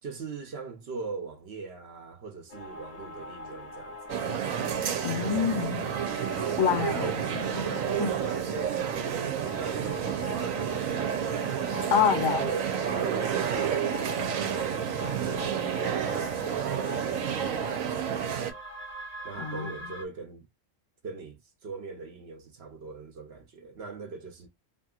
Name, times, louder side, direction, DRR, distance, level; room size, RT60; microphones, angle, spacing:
voice 1, 0.0-4.4 6.4-11.1 12.3-18.6 19.2-20.5 21.0-24.5, right 4 dB, 55° right, 1.0 m, -41 dB
sound 1, 2.5-20.0, left 2 dB, 35° left, 0.8 m, -42 dB
sound 2, 4.1-18.5, right 9 dB, 90° right, 1.1 m, -30 dB
voice 2, 5.0-5.8 6.6-8.1 11.9-12.5 19.4-19.7, left 8 dB, 70° left, 1.3 m, -27 dB
2.9 x 2.8 x 2.3 m
omnidirectional pair, 1.4 m